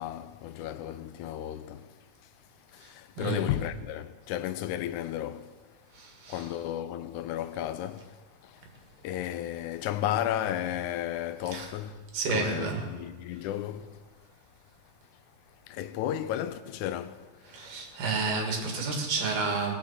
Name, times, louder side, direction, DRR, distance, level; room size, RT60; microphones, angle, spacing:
voice 1, 0.0-1.8 2.9-5.5 6.3-8.1 9.0-12.0 12.3-13.9 15.7-17.3, left 12 dB, 80° left, 2.0 m, -33 dB
voice 2, 12.1-12.9 17.5-19.7, right 4 dB, 85° right, 3.4 m, -30 dB
18.5 x 6.7 x 7.2 m
omnidirectional pair, 3.6 m